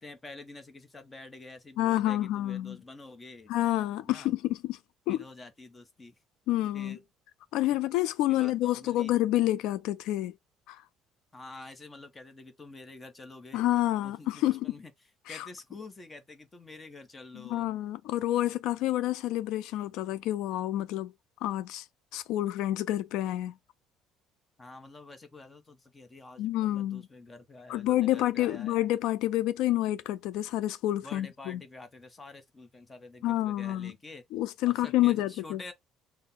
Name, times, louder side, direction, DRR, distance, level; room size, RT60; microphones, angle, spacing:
voice 1, 0.0-3.5 4.0-4.3 5.1-6.2 6.7-7.0 8.3-9.1 11.3-13.6 14.0-14.9 15.3-17.7 24.6-28.8 31.0-34.2 34.6-35.7, left 2 dB, 15° left, 0.8 m, -48 dB
voice 2, 1.8-2.8 3.5-4.8 5.1-5.2 6.5-7.0 7.5-10.3 10.7-10.8 13.5-14.7 15.3-15.5 17.4-21.1 21.4-21.9 22.1-23.5 26.4-27.0 27.7-31.6 33.2-33.9 34.3-35.6, left 14 dB, 75° left, 0.3 m, -28 dB
4.1 x 2.1 x 3.8 m
cardioid pair, 180°, 0 cm